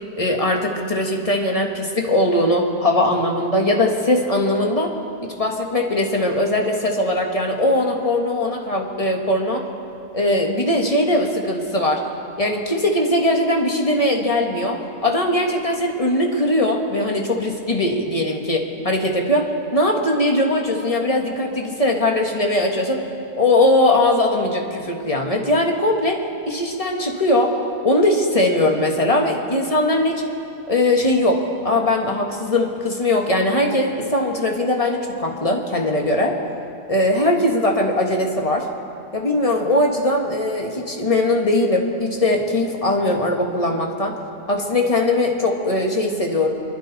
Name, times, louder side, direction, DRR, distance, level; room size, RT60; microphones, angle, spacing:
voice 1, 0.1-4.9 5.2-9.6 10.1-12.0 12.4-23.0 23.4-27.6 27.8-30.2 30.7-36.4 36.9-38.7 39.1-44.1 44.5-46.5, left 1 dB, 20° left, 1 dB, 1.5 m, -20 dB
26.5 x 11.5 x 4.1 m, 2.8 s
omnidirectional pair, 1.7 m